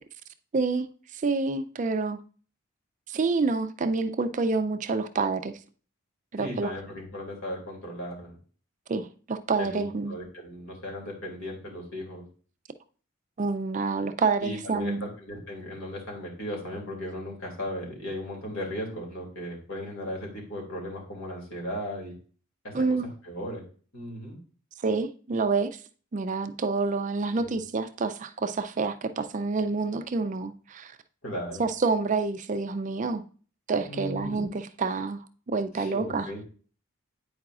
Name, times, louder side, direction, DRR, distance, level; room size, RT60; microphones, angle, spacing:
voice 1, 0.5-0.9 1.1-2.2 3.1-5.5 6.3-6.7 8.9-10.2 13.4-15.1 22.7-23.1 24.8-25.8 26.1-30.9 31.6-33.2 33.7-36.3, right 4 dB, 35° right, 0.4 m, -28 dB
voice 2, 6.4-8.4 9.6-12.3 14.4-22.2 22.6-22.7 23.2-23.6 23.9-24.4 27.3-27.6 31.2-31.6 33.9-34.5 35.8-36.4, equal, 70° left, 2.6 m, -36 dB
9.4 x 4.8 x 2.4 m
head